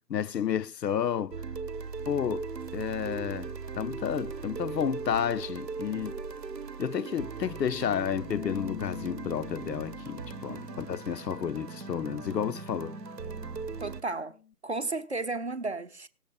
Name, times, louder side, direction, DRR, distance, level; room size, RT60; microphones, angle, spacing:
voice 1, 0.1-1.4 2.1-6.1 6.8-12.9, left 8 dB, 80° left, 0.6 m, -31 dB
sound 1, 0.6-0.8 1.1-1.2 1.5-1.9 2.2-3.6 4.1-7.4, right 3 dB, 15° right, 1.0 m, -51 dB
sound 2, 1.3-14.0, right 5 dB, 80° right, 0.9 m, -39 dB
Bass guitar, 8.3-14.5, left 9 dB, 35° left, 0.6 m, -46 dB
voice 2, 10.5-10.9 13.8-14.4 14.6-16.1, right 3 dB, 45° right, 0.7 m, -34 dB
18.0 x 7.2 x 3.6 m
figure-of-eight pair, 155°, 48 cm